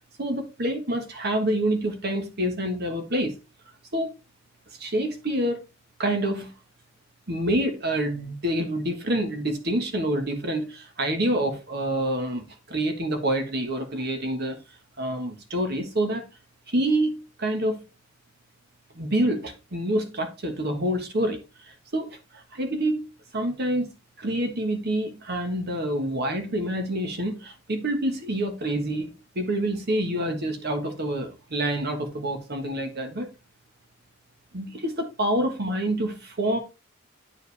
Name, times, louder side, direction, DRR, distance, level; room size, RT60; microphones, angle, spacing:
voice 1, 0.2-3.4 3.9-4.1 4.8-5.6 6.0-6.5 7.3-14.6 15.0-16.2 16.7-17.8 18.9-23.1 23.3-23.9 24.2-33.3 34.5-36.6, right 1 dB, 55° right, 1.4 m, -27 dB
9.0 x 4.9 x 3.3 m
head